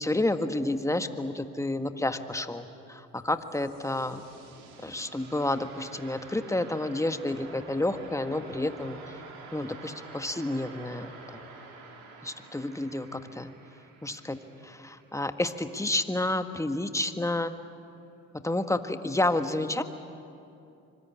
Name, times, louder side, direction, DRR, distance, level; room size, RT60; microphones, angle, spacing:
voice 1, 0.0-4.2 4.8-9.2 9.5-11.5 12.2-13.5 14.0-17.5 18.4-19.8, left 2 dB, 10° left, 8 dB, 1.6 m, -30 dB
sound 1, 3.2-15.8, right 4 dB, 90° right, 3.1 m, -49 dB
25.5 x 21.5 x 8.5 m, 2.7 s
hypercardioid pair, 55°, 37 cm